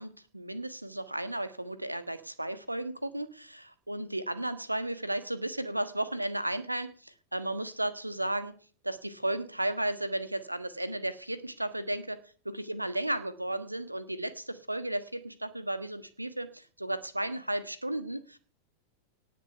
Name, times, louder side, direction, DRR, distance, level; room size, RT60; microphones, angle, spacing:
voice 1, 0.0-8.6 8.8-12.2 12.4-18.4, right 1 dB, 85° right, 14 dB, 1.4 m, -34 dB
18.5 x 6.8 x 6.7 m, 0.42 s
figure-of-eight pair, 90°, 0 cm